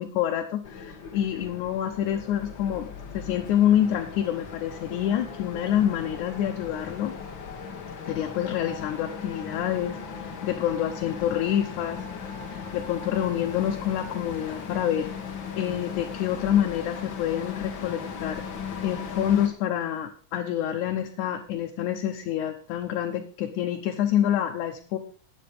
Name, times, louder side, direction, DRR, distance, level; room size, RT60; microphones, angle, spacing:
voice 1, 0.0-7.1 8.1-10.0 10.4-12.0 12.5-15.1 15.6-18.4 18.8-25.0, left 10 dB, 75° left, 3 dB, 2.3 m, -27 dB
sound 1, 0.6-19.5, left 6 dB, 45° left, 1.7 m, -38 dB
12.5 x 9.0 x 5.1 m, 0.42 s
omnidirectional pair, 3.7 m